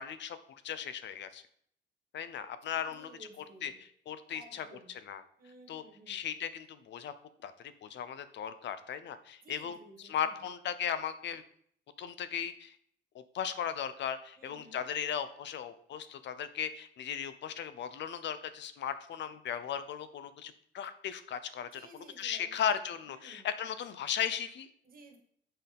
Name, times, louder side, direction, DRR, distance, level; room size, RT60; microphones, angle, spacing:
voice 1, 0.0-1.4 2.1-3.1 3.4-3.7 4.1-5.2 5.7-7.1 7.4-9.8 10.0-11.4 12.0-12.8 13.1-21.7 22.2-24.7, left 8 dB, 65° left, 12 dB, 0.6 m, -37 dB
voice 2, 2.6-3.8 4.3-5.0 5.4-6.3 9.4-10.3 14.3-14.8 21.7-23.5 24.8-25.2, right 2 dB, 45° right, 2 dB, 1.9 m, -55 dB
6.9 x 5.6 x 3.6 m, 0.64 s
cardioid pair, 90°, 20 cm